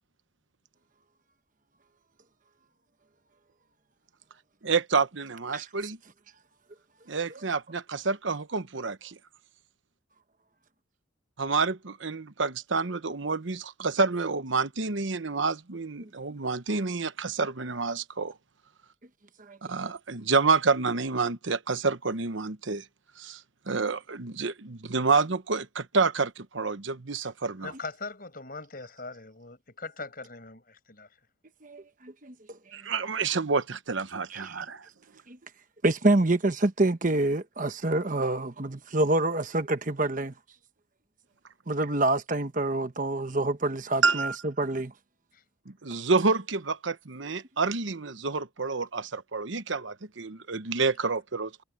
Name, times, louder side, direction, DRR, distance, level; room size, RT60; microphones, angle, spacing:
voice 1, 4.6-6.0 7.1-9.2 11.4-18.3 19.6-22.8 23.2-27.7 32.7-34.9 44.0-44.4 45.7-51.6, right 4 dB, 75° right, 1.0 m, -28 dB
voice 2, 27.6-31.1, left 3 dB, 45° left, 5.5 m, -41 dB
voice 3, 31.6-32.3 34.3-34.6 35.3-35.4 35.8-40.3 41.7-44.3 44.6-44.9, right 2 dB, 40° right, 1.1 m, -27 dB
head